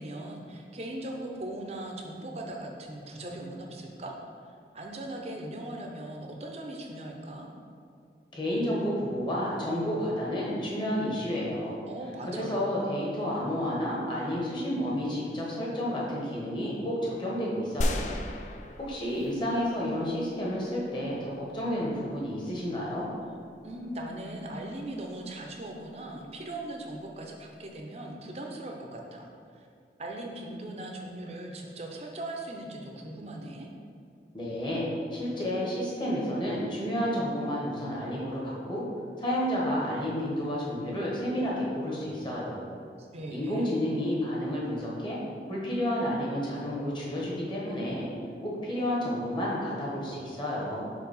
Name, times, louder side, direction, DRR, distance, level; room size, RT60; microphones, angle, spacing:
voice 1, 0.0-4.1 4.7-7.5 11.8-12.8 23.6-29.7 30.0-33.7 43.0-43.7, right 1 dB, 35° right, 1 dB, 0.6 m, -39 dB
voice 2, 8.3-11.8 12.2-18.2 18.8-23.1 34.3-34.8 35.1-38.8 39.2-42.7 43.3-45.2 45.5-48.1 48.4-50.8, equal, 25° left, -5 dB, 1.2 m, -31 dB
sound 1, 17.8-19.6 20.1-20.2, left 1 dB, 40° left, 0.4 m, -32 dB
4.7 x 4.1 x 5.5 m, 2.3 s
head